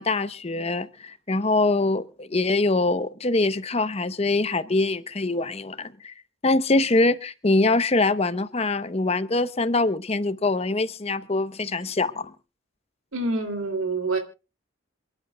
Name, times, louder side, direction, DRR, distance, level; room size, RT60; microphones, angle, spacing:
voice 1, 0.0-6.1 6.4-12.3, left 2 dB, 30° left, 0.8 m, -24 dB
voice 2, 13.1-14.2, right 3 dB, 90° right, 2.8 m, -26 dB
27.5 x 11.0 x 2.2 m
head